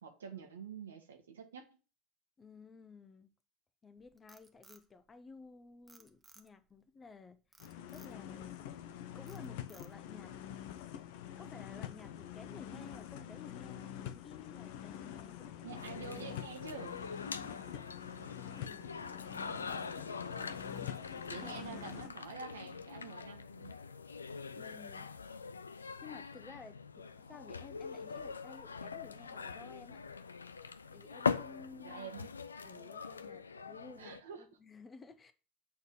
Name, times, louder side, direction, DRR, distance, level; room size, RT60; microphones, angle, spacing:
voice 1, 0.0-1.7 15.6-17.0 19.5-19.9 21.3-23.7 31.8-32.3 34.0-34.4, right 6 dB, 80° right, 1.8 m, -47 dB
voice 2, 2.4-3.3 3.8-7.4 7.9-8.7 9.1-10.6 11.4-15.9 17.4-17.7 18.6-18.9 21.4-22.0 24.5-25.1 26.0-30.0 30.9-32.1 32.6-35.3, left 4 dB, 25° left, 1.2 m, -54 dB
Frog, 4.0-5.5 5.9-6.8 7.5-8.2 8.7-8.9 9.3-10.2, right 3 dB, 15° right, 1.4 m, -61 dB
sound 1, 7.6-22.1, left 10 dB, 65° left, 0.9 m, -46 dB
sound 2, 15.7-34.2, left 5 dB, 85° left, 0.5 m, -43 dB
8.3 x 4.2 x 6.8 m
figure-of-eight pair, 75°, 0 cm